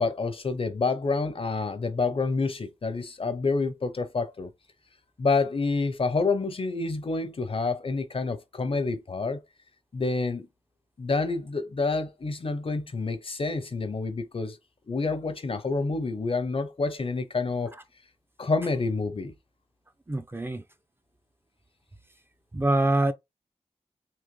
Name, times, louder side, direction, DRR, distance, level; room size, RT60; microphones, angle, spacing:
voice 1, 0.0-4.5 5.2-9.4 9.9-10.5 11.0-14.6 14.9-17.8 18.4-19.3, left 3 dB, 50° left, 0.6 m, -28 dB
voice 2, 20.1-20.6 22.5-23.1, right 2 dB, 20° right, 0.5 m, -24 dB
3.8 x 2.9 x 3.1 m
wide cardioid pair, 85°, 12 cm